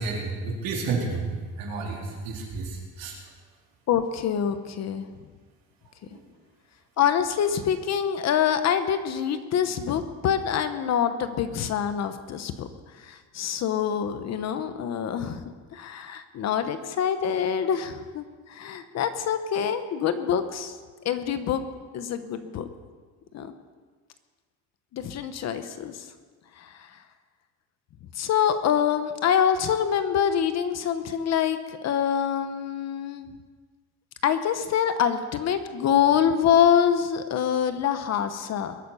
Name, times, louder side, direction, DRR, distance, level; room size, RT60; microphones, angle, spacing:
voice 1, 0.0-3.2 6.0-6.2, right 4 dB, 65° right, -2 dB, 4.0 m, -31 dB
voice 2, 3.9-5.1 7.0-12.7 12.9-15.4 15.7-20.8 21.0-21.6 21.9-22.7 23.3-23.5 24.9-26.1 26.6-27.0 28.1-33.3 34.2-38.8, left 8 dB, 45° left, 10 dB, 1.0 m, -25 dB
21.5 x 9.4 x 5.6 m, 1.4 s
cardioid pair, 165°, 37 cm